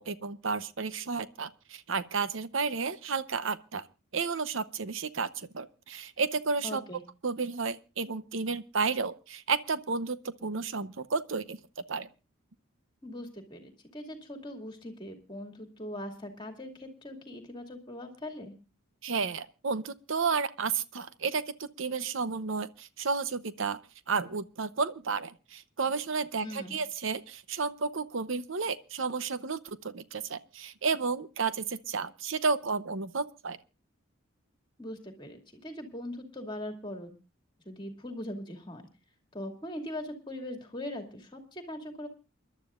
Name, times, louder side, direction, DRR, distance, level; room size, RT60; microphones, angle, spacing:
voice 1, 0.0-3.9 4.1-6.8 7.2-12.1 19.0-23.8 24.1-33.6, right 4 dB, 70° right, 0.8 m, -32 dB
voice 2, 6.6-7.0 13.0-18.5 26.4-26.8 34.8-37.2 37.6-38.8 39.3-42.1, left 1 dB, 20° left, 2.5 m, -41 dB
28.5 x 12.0 x 2.4 m
head